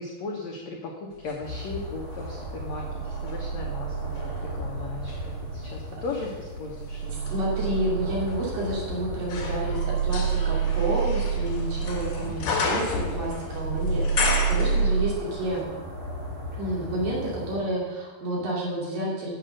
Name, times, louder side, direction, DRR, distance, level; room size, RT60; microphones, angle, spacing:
voice 1, 0.0-4.3 4.6-7.3 12.4-12.7, left 3 dB, 75° left, 0 dB, 1.6 m, -37 dB
sound 1, 1.2-3.4 4.0-15.3 15.6-15.7, left 4 dB, 60° left, 3.1 m, -33 dB
sound 2, 1.4-17.5, left 2 dB, 25° right, 1.9 m, -38 dB
sound 3, 1.7-15.1, right 8 dB, 80° right, 3.8 m, -30 dB
voice 2, 7.1-15.6 16.5-19.3, right 1 dB, 60° right, -4 dB, 4.1 m, -30 dB
8.4 x 7.9 x 6.4 m, 1.3 s
omnidirectional pair, 4.6 m